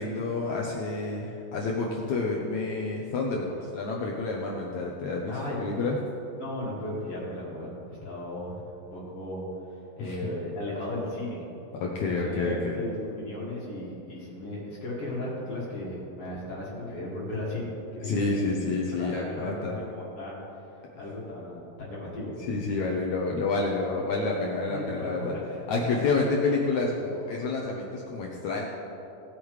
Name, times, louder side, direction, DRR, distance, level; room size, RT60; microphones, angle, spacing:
voice 1, 0.0-6.0 10.0-10.2 11.7-12.8 18.0-19.8 22.4-25.3 25.7-28.6, left 3 dB, 75° left, -2 dB, 1.7 m, -29 dB
voice 2, 5.3-5.6 6.4-9.4 10.0-11.4 12.2-18.5 18.9-20.4 21.0-22.3 24.7-25.9, left 1 dB, 45° left, -6 dB, 2.6 m, -36 dB
18.0 x 8.5 x 3.2 m, 2.9 s
omnidirectional pair, 4.3 m